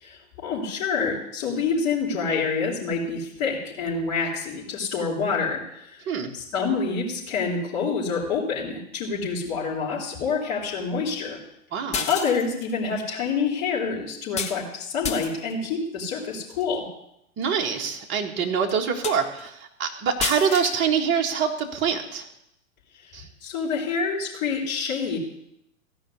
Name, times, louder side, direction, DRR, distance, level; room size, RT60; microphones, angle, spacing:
voice 1, 0.0-6.0 6.3-11.4 12.1-16.8 23.4-25.2, left 5 dB, 45° left, -6 dB, 4.2 m, -27 dB
voice 2, 11.7-12.1 17.4-22.3 23.1-23.2, right 6 dB, 25° right, 2 dB, 1.8 m, -25 dB
sound 1, 11.9-12.7 14.4-14.6 15.0-15.5 16.3-16.6 17.4-17.5 18.0-18.1 18.7-18.8 19.0-19.5 20.2-20.8, left 6 dB, 15° left, 1.1 m, -30 dB
15.5 x 5.6 x 9.6 m, 0.79 s
hypercardioid pair, 120°, 42 cm